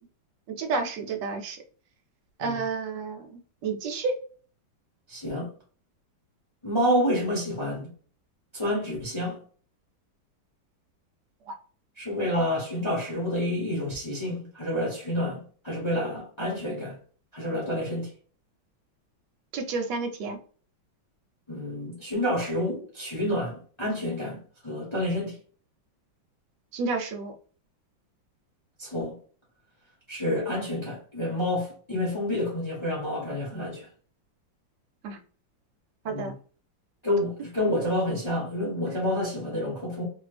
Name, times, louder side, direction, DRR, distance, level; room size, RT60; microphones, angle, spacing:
voice 1, 0.5-1.6 2.4-4.1 19.5-20.4 26.7-27.3 35.0-35.2 36.0-36.3 38.9-39.0, right 4 dB, 70° right, 1.1 m, -30 dB
voice 2, 5.1-5.5 6.6-7.9 8.5-9.4 12.0-16.9 17.3-18.1 21.5-25.4 28.8-29.1 30.1-33.9 36.0-36.3 37.0-40.0, left 1 dB, 20° left, 0.8 m, -29 dB
2.8 x 2.6 x 3.2 m
omnidirectional pair, 2.2 m